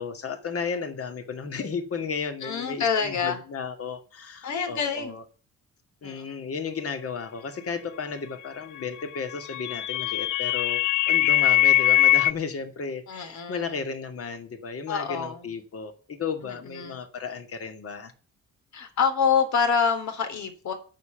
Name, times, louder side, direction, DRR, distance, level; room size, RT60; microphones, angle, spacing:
voice 1, 0.0-5.2 6.0-18.1, left 5 dB, 50° left, 7 dB, 2.6 m, -34 dB
voice 2, 2.4-3.4 4.4-5.2 6.0-6.3 13.1-13.8 14.9-15.5 16.4-17.0 18.7-20.7, left 6 dB, 70° left, 7 dB, 3.4 m, -27 dB
sound 1, 9.1-12.3, left 14 dB, 85° left, 0.6 m, -21 dB
9.4 x 7.4 x 9.1 m, 0.37 s
cardioid pair, 90°, 30 cm